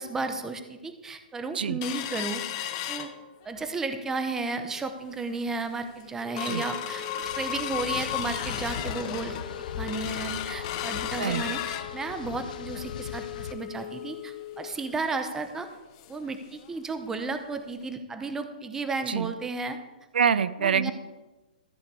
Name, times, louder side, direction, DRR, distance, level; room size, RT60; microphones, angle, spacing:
voice 1, 0.0-3.1 3.4-7.0 7.3-9.4 9.8-15.7 16.1-19.8 20.6-20.9, right 3 dB, 10° right, 8 dB, 0.8 m, -33 dB
sound 1, 1.8-3.7 4.1-4.2 4.5-4.9 5.4-5.5 5.8-16.3 16.6-16.7 17.1-17.3 17.8-17.9, left 10 dB, 35° left, 1.0 m, -35 dB
sound 2, 7.2-13.5, left 7 dB, 55° left, 1.0 m, -39 dB
voice 2, 20.1-20.9, right 7 dB, 75° right, 15 dB, 0.6 m, -25 dB
14.0 x 5.0 x 8.3 m, 1.1 s
hypercardioid pair, 155°, 5 cm